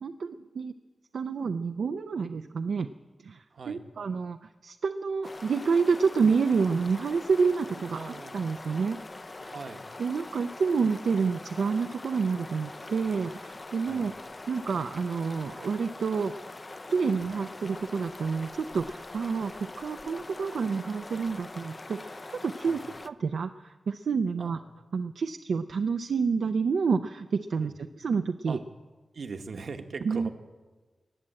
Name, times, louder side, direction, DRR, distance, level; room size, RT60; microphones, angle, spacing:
voice 1, 0.0-0.7 1.1-2.9 3.2-9.0 9.4-9.5 10.0-14.1 14.5-16.3 16.9-22.8 23.0-24.6 24.9-28.6 30.0-30.3, right 5 dB, 75° right, 7 dB, 0.4 m, -29 dB
voice 2, 3.5-3.8 7.9-8.4 9.5-9.8 13.9-14.0 22.7-22.8 24.4-24.6 27.6-27.7 28.5-28.6 29.1-30.3, right 4 dB, 55° right, 7 dB, 1.1 m, -40 dB
sound 1, 5.2-23.1, left 2 dB, 25° left, 0.4 m, -43 dB
20.0 x 7.6 x 8.8 m, 1.3 s
wide cardioid pair, 175°, 0 cm